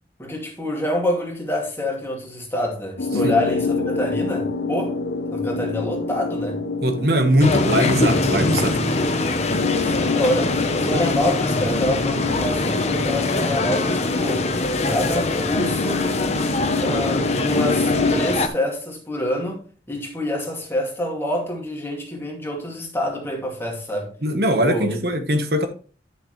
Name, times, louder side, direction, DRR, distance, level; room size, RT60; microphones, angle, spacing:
voice 1, 0.2-5.0 5.3-6.6 9.8-14.5 14.9-16.1 16.8-24.1 24.6-25.0, left 1 dB, 15° left, 2.3 m, -27 dB
sound 1, 3.0-18.2, left 4 dB, 70° left, 0.7 m, -27 dB
voice 2, 6.8-8.8 24.2-25.7, equal, 60° right, 1.2 m, -21 dB
sound 2, 7.4-18.5, left 2 dB, 35° left, 1.0 m, -23 dB
11.0 x 6.8 x 3.2 m
head